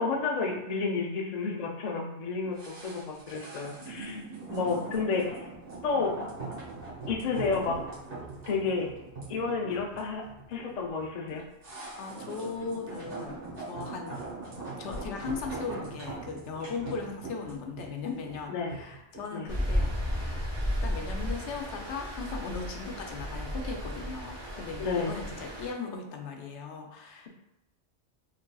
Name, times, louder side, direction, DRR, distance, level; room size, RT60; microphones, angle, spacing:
voice 1, 0.0-4.2 4.5-5.4 5.8-6.1 7.1-7.8 8.5-8.9 9.3-10.2 10.5-11.4 18.5-18.7 19.3-19.5 24.8-25.1, left 4 dB, 50° left, 0 dB, 0.5 m, -30 dB
sound 1, 2.5-19.8 20.1-20.2, right 3 dB, 80° right, 1.7 m, -41 dB
voice 2, 12.0-14.2 14.8-20.5 20.8-27.3, left 4 dB, 85° left, 2 dB, 0.9 m, -38 dB
Stream, 19.5-25.7, equal, 25° right, 1.0 m, -33 dB
3.7 x 3.2 x 2.3 m, 0.89 s
omnidirectional pair, 1.2 m